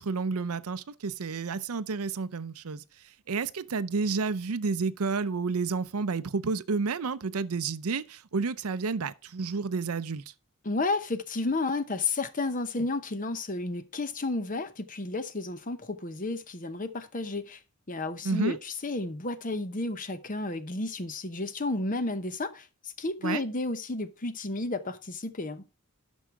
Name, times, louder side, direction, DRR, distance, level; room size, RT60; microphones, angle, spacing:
voice 1, 0.0-2.8 3.3-10.2 18.2-18.6 23.2-23.4, right 4 dB, 80° right, 0.6 m, -30 dB
voice 2, 10.6-17.6 17.9-25.6, left 2 dB, 35° left, 0.9 m, -32 dB
11.0 x 6.3 x 4.6 m
head